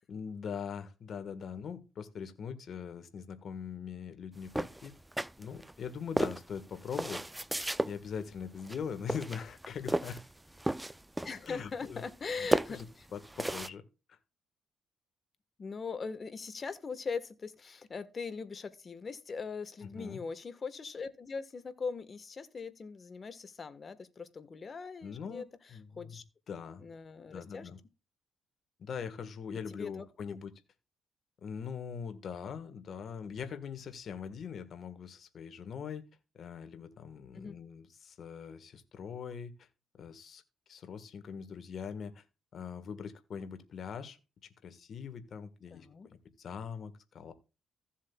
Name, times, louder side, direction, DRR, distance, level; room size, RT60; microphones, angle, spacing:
voice 1, 0.1-4.9 5.4-7.2 7.8-10.2 11.4-12.0 12.4-12.9 13.1-13.8 14.1-14.2 19.8-20.2 25.0-26.8 27.3-27.8 28.8-30.5 31.4-36.0 36.3-39.7 40.0-40.4 40.7-42.2 42.5-44.2 44.6-47.3, left 6 dB, 55° left, 1.5 m, -42 dB
sound 1, 4.5-5.7 6.2-7.9 8.6-8.8 9.1-10.3 10.6-11.5 11.8-13.7, right 1 dB, 10° right, 0.4 m, -33 dB
voice 2, 11.2-13.0 15.6-25.5 26.0-26.2 26.8-27.7 29.7-30.4 37.3-37.6 45.7-46.1, left 5 dB, 40° left, 1.4 m, -41 dB
15.5 x 7.4 x 2.3 m
cardioid pair, 90°, 0 cm